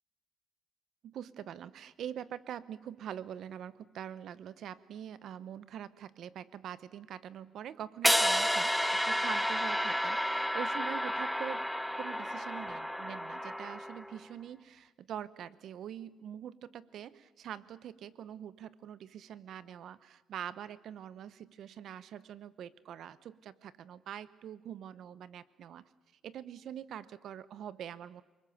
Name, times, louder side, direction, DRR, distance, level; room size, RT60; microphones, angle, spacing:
voice 1, 1.0-11.7 12.0-25.8 26.2-28.2, right 9 dB, 70° right, 17 dB, 0.9 m, -44 dB
sound 1, 8.0-14.2, equal, ahead, 1.1 m, -31 dB
29.0 x 21.0 x 7.1 m, 1.1 s
cardioid pair, 90°, 0 cm